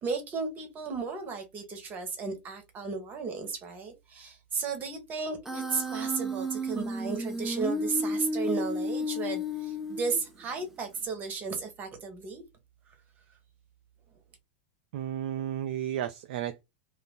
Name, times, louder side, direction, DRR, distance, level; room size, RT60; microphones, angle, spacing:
voice 1, 0.0-12.4, right 4 dB, 30° right, 1.2 m, -34 dB
Human voice, 5.4-10.4, equal, 5° right, 0.7 m, -32 dB
voice 2, 14.9-16.6, right 10 dB, 60° right, 0.3 m, -33 dB
2.7 x 2.4 x 3.4 m
hypercardioid pair, 105°, 6 cm